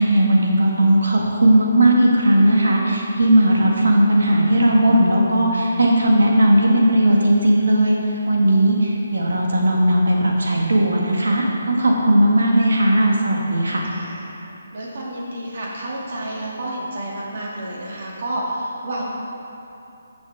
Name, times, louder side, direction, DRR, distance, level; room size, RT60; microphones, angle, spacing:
voice 1, 0.0-7.9 8.3-13.8, right 1 dB, 75° right, -2 dB, 1.9 m, -17 dB
voice 2, 13.8-14.4 14.7-19.0, right 1 dB, 55° right, -4 dB, 2.3 m, -30 dB
14.5 x 6.3 x 3.6 m, 2.7 s
figure-of-eight pair, 150°, 0 cm